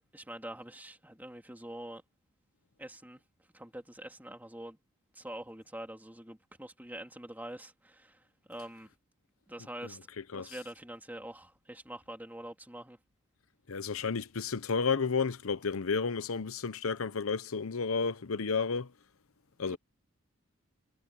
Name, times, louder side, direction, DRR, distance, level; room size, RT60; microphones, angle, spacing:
voice 1, 0.1-2.0 2.8-3.2 3.5-4.8 5.1-8.9 9.5-10.0 10.3-13.0 19.7-19.8, right 1 dB, 10° right, 2.6 m, -45 dB
voice 2, 9.8-10.5 13.7-18.9 19.6-19.8, left 5 dB, 85° left, 0.8 m, -32 dB
head